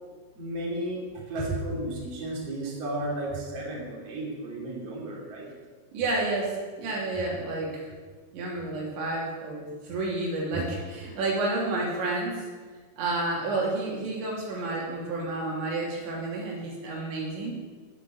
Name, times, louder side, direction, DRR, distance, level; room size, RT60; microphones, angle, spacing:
voice 1, 0.3-5.5, right 1 dB, 35° right, -3 dB, 3.9 m, -33 dB
voice 2, 5.9-7.9 8.3-12.5 13.0-17.6, right 2 dB, 75° right, -3 dB, 5.2 m, -30 dB
16.5 x 6.8 x 9.1 m, 1.4 s
omnidirectional pair, 5.4 m